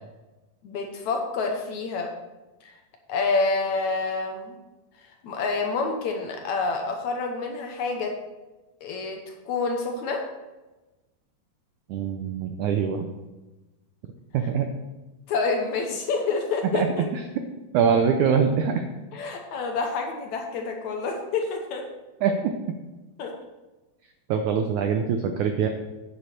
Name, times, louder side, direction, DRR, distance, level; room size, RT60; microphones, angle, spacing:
voice 1, 0.6-2.1 2.6-2.8 3.1-4.5 5.2-8.1 8.8-10.2 15.3-17.1 19.1-21.8 23.2-23.3, left 4 dB, 70° left, 2 dB, 1.9 m, -28 dB
voice 2, 11.9-13.1 14.3-14.7 16.6-16.9 17.1-17.2 17.7-18.8 22.2-22.5 24.3-25.7, right 7 dB, 90° right, 6 dB, 1.7 m, -23 dB
9.8 x 8.7 x 4.4 m, 1.1 s
omnidirectional pair, 4.4 m